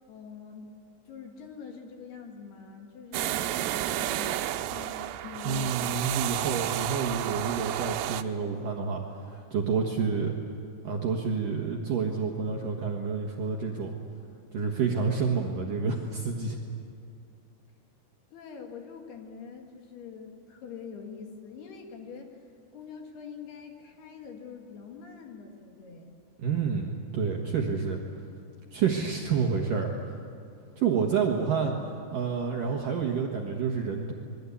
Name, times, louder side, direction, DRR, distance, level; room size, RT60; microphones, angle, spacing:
voice 1, 0.1-0.7 1.1-4.4 4.7-6.0 18.3-22.3 22.7-26.2, left 6 dB, 60° left, 2 dB, 3.6 m, -44 dB
sound 1, 3.1-8.2, right 13 dB, 90° right, 3.4 m, -31 dB
voice 2, 5.5-9.0 9.3-10.3 10.8-13.9 14.5-16.6 26.4-28.0 28.7-29.9 30.8-34.1, right 5 dB, 60° right, 0 dB, 2.4 m, -29 dB
26.5 x 22.5 x 8.5 m, 2.4 s
omnidirectional pair, 5.7 m